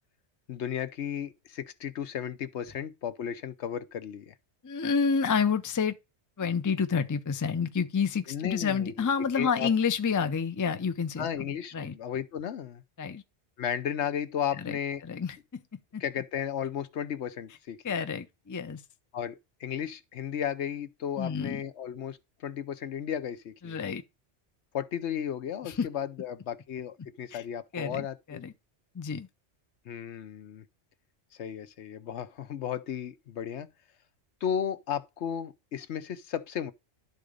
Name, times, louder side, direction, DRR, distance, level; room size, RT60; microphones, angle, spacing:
voice 1, 0.5-4.3 8.3-8.9 9.4-9.7 11.2-12.8 13.6-15.0 16.0-18.0 19.1-23.8 24.7-28.5 29.9-30.6 31.4-33.7 34.4-36.7, left 9 dB, 70° left, 1.0 m, -34 dB
voice 2, 4.6-6.0 6.4-11.3 11.7-11.9 13.0-13.2 14.6-14.8 15.0-15.6 15.9-16.0 17.8-18.8 21.2-21.6 23.6-24.0 25.6-25.9 27.3-27.4 27.7-28.5 28.9-29.3, left 6 dB, 25° left, 0.5 m, -29 dB
11.5 x 4.0 x 5.0 m
omnidirectional pair, 1.2 m